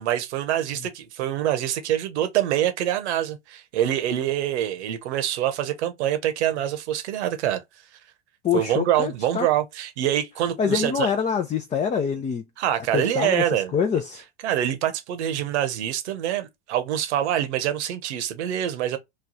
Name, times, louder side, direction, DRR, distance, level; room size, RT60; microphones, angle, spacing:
voice 1, 0.0-7.6 8.5-10.9 12.6-13.7 14.4-19.0, right 11 dB, 75° right, 1.0 m, -25 dB
voice 2, 8.4-9.5 10.6-12.4 12.9-14.2, left 7 dB, 20° left, 0.5 m, -25 dB
3.1 x 2.3 x 3.9 m
hypercardioid pair, 95°, 35 cm